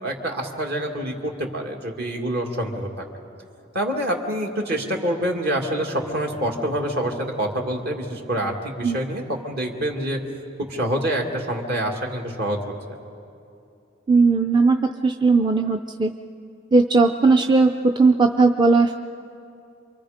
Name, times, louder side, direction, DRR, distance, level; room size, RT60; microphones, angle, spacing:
voice 1, 0.0-3.1 3.7-10.2 10.6-12.6, right 1 dB, 55° right, 1 dB, 2.4 m, -26 dB
voice 2, 14.1-14.8 15.0-16.1 16.7-19.0, right 3 dB, 25° right, 5 dB, 0.5 m, -17 dB
28.5 x 24.0 x 5.1 m, 2.6 s
head